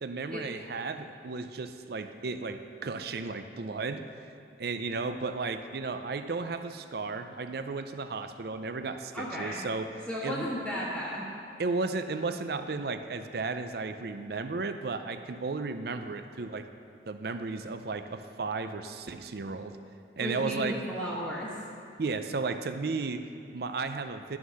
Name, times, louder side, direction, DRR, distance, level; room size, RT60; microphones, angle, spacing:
voice 1, 0.0-4.1 4.6-10.5 11.6-16.7 17.1-19.8 20.2-20.8 22.0-24.4, right 3 dB, 55° right, 9 dB, 0.5 m, -34 dB
voice 2, 9.1-9.6 10.1-11.2 20.2-21.5, equal, ahead, -11 dB, 1.3 m, -34 dB
11.5 x 5.8 x 6.4 m, 2.6 s
head